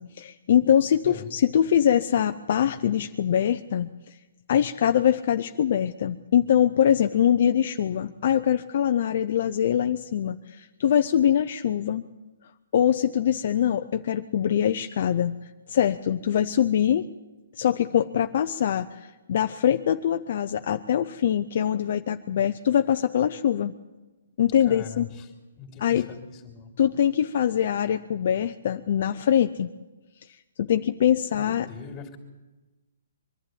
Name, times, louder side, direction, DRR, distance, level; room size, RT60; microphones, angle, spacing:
voice 1, 0.0-4.1 4.5-12.0 12.7-15.4 15.7-17.1 17.6-23.7 24.4-25.1 25.8-26.1 26.8-29.7 30.6-31.7, left 9 dB, 50° left, 7 dB, 0.6 m, -23 dB
voice 2, 24.6-25.3 25.6-26.7 31.3-32.2, left 7 dB, 15° left, 3 dB, 3.0 m, -41 dB
23.5 x 12.0 x 9.4 m, 1.2 s
hypercardioid pair, 160°, 0 cm